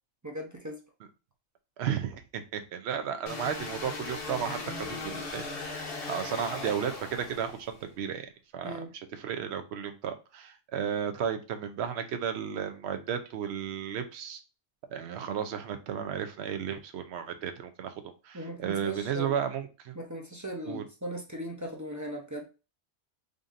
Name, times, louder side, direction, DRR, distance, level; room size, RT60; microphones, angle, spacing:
voice 1, 0.2-0.8 8.6-8.9 18.3-19.3 19.9-22.5, equal, 20° right, 1 dB, 0.5 m, -38 dB
voice 2, 1.8-8.8 9.1-14.4 14.9-20.0 20.7-20.8, right 8 dB, 75° right, 8 dB, 0.9 m, -34 dB
sound 1, 3.3-7.8, left 3 dB, 60° left, 1.1 m, -38 dB
5.0 x 2.6 x 2.5 m, 0.31 s
omnidirectional pair, 1.1 m